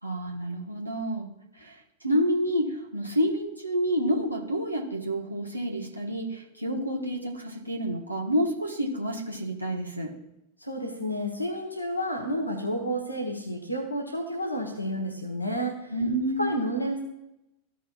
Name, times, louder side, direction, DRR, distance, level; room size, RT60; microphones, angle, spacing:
voice 1, 0.0-1.3 1.6-1.7 2.0-10.1 15.9-16.5, equal, 85° right, -1 dB, 1.3 m, -29 dB
voice 2, 10.6-15.9 16.4-17.0, equal, 85° left, 1 dB, 1.2 m, -30 dB
15.0 x 5.4 x 2.4 m, 0.88 s
figure-of-eight pair, 90°, 0 cm